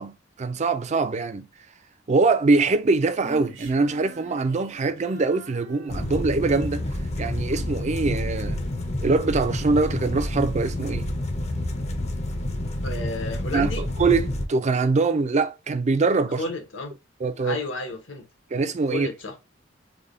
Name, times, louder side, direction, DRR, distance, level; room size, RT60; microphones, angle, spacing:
voice 1, 0.0-1.5 2.1-6.8 7.2-8.6 9.0-11.2 13.5-13.7 14.0-16.4 17.2-17.6 18.5-19.1, right 3 dB, 35° right, 0.4 m, -23 dB
Female singing, 3.2-6.7, right 1 dB, 80° right, 1.1 m, -45 dB
sound 1, 5.9-14.5, left 1 dB, 35° left, 0.6 m, -29 dB
voice 2, 12.8-13.8 16.3-16.9 17.4-18.2 18.9-19.4, left 2 dB, 75° left, 1.0 m, -32 dB
3.4 x 2.2 x 3.5 m
head